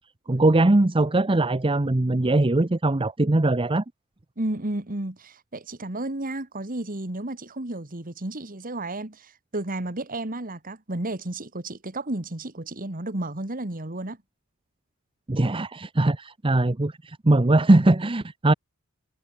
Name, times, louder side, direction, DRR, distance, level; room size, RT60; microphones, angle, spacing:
voice 1, 0.3-3.8 15.3-18.5, right 2 dB, 25° right, 0.7 m, -21 dB
voice 2, 4.4-14.2, right 2 dB, 40° right, 2.0 m, -32 dB
head